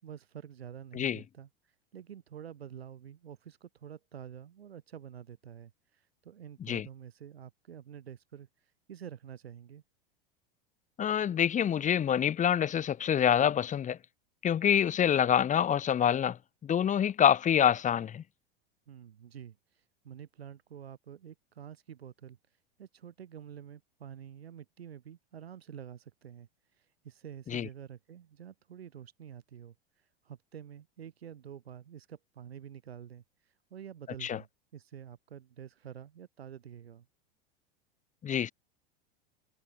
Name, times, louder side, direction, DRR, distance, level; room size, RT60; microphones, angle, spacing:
voice 1, 0.0-1.5 1.9-8.5 8.9-9.8 18.9-22.4 22.8-26.5 26.8-29.7 30.2-33.2 33.7-37.1, right 9 dB, 90° right, 5.0 m, -48 dB
voice 2, 11.0-14.0 14.4-16.4 16.6-18.2 27.5-27.7 34.2-34.4 38.2-38.5, left 9 dB, 25° left, 1.0 m, -26 dB
hypercardioid pair, 95°, 30 cm